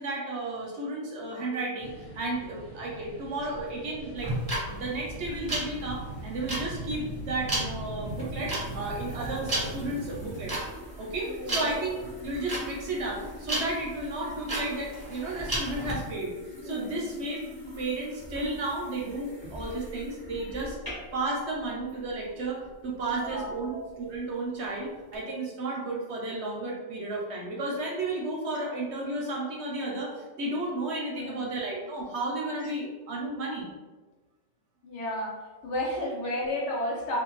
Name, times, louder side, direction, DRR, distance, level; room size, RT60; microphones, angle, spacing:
voice 1, 0.0-4.3 4.7-10.5 11.0-12.0 12.2-16.4 16.6-17.4 17.8-20.8 21.1-33.7, right 2 dB, 65° right, -2 dB, 0.7 m, -33 dB
sound 1, 1.8-10.6, right 2 dB, 85° left, 1.2 m, -40 dB
sound 2, 4.2-15.9, right 1 dB, 25° right, 0.6 m, -33 dB
sound 3, 6.8-25.2, equal, 20° left, 0.8 m, -46 dB
voice 2, 11.3-11.7 16.6-17.1 23.1-23.5 31.1-31.5 32.6-32.7 34.8-37.2, left 1 dB, 65° left, -2 dB, 0.9 m, -33 dB
2.5 x 2.4 x 3.0 m, 1.3 s
omnidirectional pair, 1.4 m